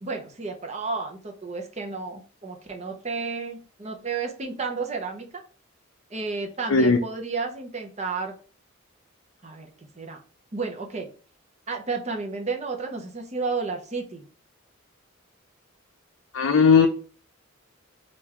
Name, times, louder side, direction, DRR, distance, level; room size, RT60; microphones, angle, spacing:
voice 1, 0.0-5.3 6.1-8.3 9.4-10.2 10.5-11.1 11.7-14.2, right 4 dB, 35° right, 0.7 m, -32 dB
voice 2, 16.3-16.9, left 5 dB, 70° left, 0.5 m, -17 dB
3.7 x 2.5 x 4.4 m
head